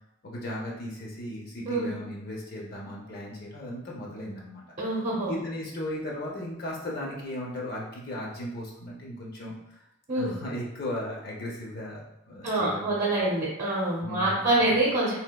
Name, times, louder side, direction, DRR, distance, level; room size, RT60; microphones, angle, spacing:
voice 1, 0.2-4.6 5.3-9.8 10.1-13.1 14.0-14.8, left 1 dB, 50° left, -3 dB, 0.6 m, -36 dB
voice 2, 4.8-5.3 10.1-10.3 12.4-15.1, right 2 dB, 40° right, -8 dB, 0.8 m, -25 dB
3.4 x 2.7 x 2.2 m, 0.85 s
head